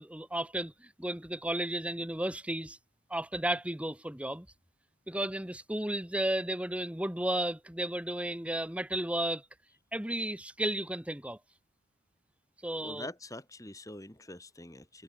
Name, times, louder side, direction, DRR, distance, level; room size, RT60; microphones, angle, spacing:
voice 1, 0.0-2.8 3.1-4.5 5.1-9.5 9.9-11.4 12.6-13.1, right 1 dB, 5° right, 1.0 m, -33 dB
voice 2, 12.8-15.0, left 1 dB, 15° left, 4.6 m, -45 dB
head